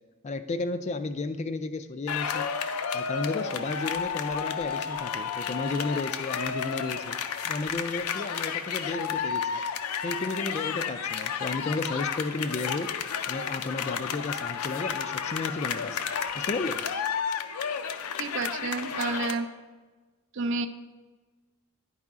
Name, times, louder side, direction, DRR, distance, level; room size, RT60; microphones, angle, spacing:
voice 1, 0.2-2.5 2.9-7.2 7.5-9.6 10.0-12.9 13.3-16.0 16.3-16.8, left 3 dB, 30° left, 10 dB, 0.3 m, -33 dB
sound 1, 2.1-19.3, left 7 dB, 90° left, 0.5 m, -32 dB
voice 2, 18.2-19.5 20.3-20.7, right 3 dB, 55° right, 10 dB, 0.4 m, -30 dB
10.5 x 4.7 x 3.6 m, 1.3 s
head